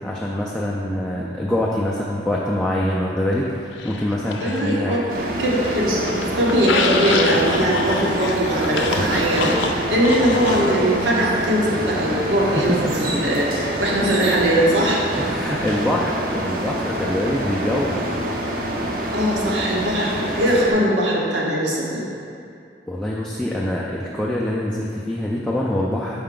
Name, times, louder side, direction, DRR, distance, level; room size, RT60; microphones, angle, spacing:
voice 1, 0.0-5.0 12.4-13.3 15.2-18.1 22.9-26.2, left 1 dB, 5° left, -5 dB, 0.3 m, -24 dB
sound 1, 3.8-5.1 5.5-10.8, left 4 dB, 85° left, 0.4 m, -27 dB
voice 2, 4.4-5.0 5.4-12.7 13.0-15.0 19.1-22.0, right 1 dB, 80° right, -3 dB, 0.9 m, -21 dB
sound 2, 5.1-20.7, right 1 dB, 50° right, 0.6 m, -26 dB
5.7 x 4.3 x 3.7 m, 2.5 s
head